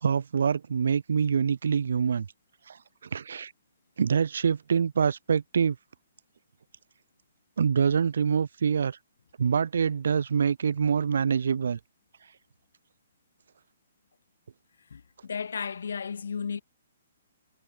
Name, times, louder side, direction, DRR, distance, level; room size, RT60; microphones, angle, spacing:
voice 1, 0.0-2.3 2.7-2.8 3.1-3.5 4.0-5.8 7.6-9.0 9.4-11.8, right 6 dB, 75° right, 0.6 m, -25 dB
voice 2, 14.9-16.6, left 6 dB, 80° left, 0.4 m, -34 dB
hypercardioid pair, 155°, 0 cm